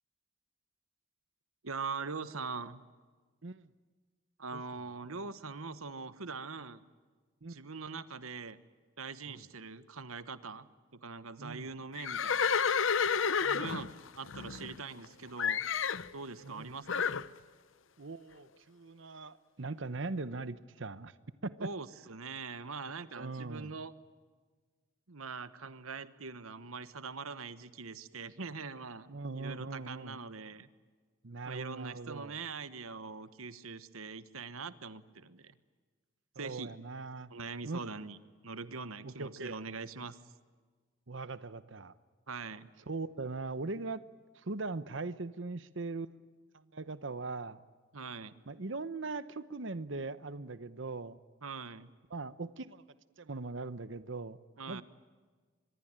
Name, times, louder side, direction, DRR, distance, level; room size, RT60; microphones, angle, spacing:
voice 1, 1.6-2.8 4.4-6.8 7.5-8.6 9.0-10.7 10.9-12.6 13.5-13.9 14.2-15.6 16.1-17.1 21.6-23.9 25.1-29.1 29.3-30.7 31.5-35.5 36.4-36.7 37.3-38.2 38.4-40.2 42.3-42.7 47.9-48.3 51.4-51.9 54.6-54.8, right 4 dB, 90° right, 14 dB, 1.3 m, -42 dB
Livestock farm animals working animals, 12.0-15.1 15.4-16.1 16.9-17.3, left 6 dB, 70° left, 0.7 m, -30 dB
voice 2, 18.0-21.1 21.4-21.7 23.1-23.7 29.1-30.2 31.2-32.3 36.4-37.3 37.6-37.8 39.0-39.6 41.1-41.9 42.9-44.0 44.3-46.2 46.5-47.6 48.5-51.2 52.1-52.8 53.2-54.4 54.7-54.8, right 3 dB, 65° right, 14 dB, 0.9 m, -40 dB
25.0 x 22.0 x 8.9 m, 1.4 s
head